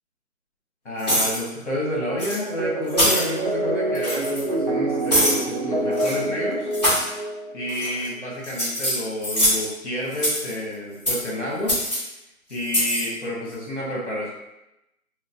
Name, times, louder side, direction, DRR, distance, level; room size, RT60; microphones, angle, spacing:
voice 1, 0.8-6.7 7.5-11.8 12.5-14.3, left 1 dB, 55° left, -4 dB, 1.1 m, -29 dB
metal keys, 1.0-1.4 2.2-2.4 2.9-3.3 3.9-4.4 5.1-5.4 5.9-6.2 6.7-7.0 7.7-8.1 8.4-9.6 10.1-10.5 11.1-11.3 11.7-12.0 12.6-13.0, equal, 30° left, 0.9 m, -23 dB
sound 1, 2.6-7.7, right 2 dB, 35° right, 0.7 m, -26 dB
3.0 x 2.0 x 2.7 m, 0.91 s
hypercardioid pair, 180°, 43 cm